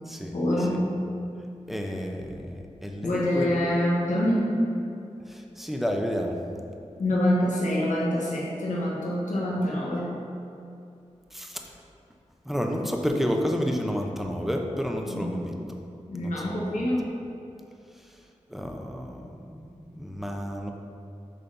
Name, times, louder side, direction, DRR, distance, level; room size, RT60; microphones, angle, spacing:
voice 1, 0.3-1.0 3.0-4.7 7.0-10.3 15.1-15.5 16.1-17.1, left 1 dB, 85° left, -5 dB, 1.2 m, -26 dB
voice 2, 1.7-3.5 5.3-6.4 11.3-11.7 12.4-15.6 16.2-16.6 18.5-20.7, equal, ahead, 1 dB, 0.8 m, -30 dB
6.8 x 4.0 x 5.5 m, 2.7 s
cardioid pair, 45°, 13 cm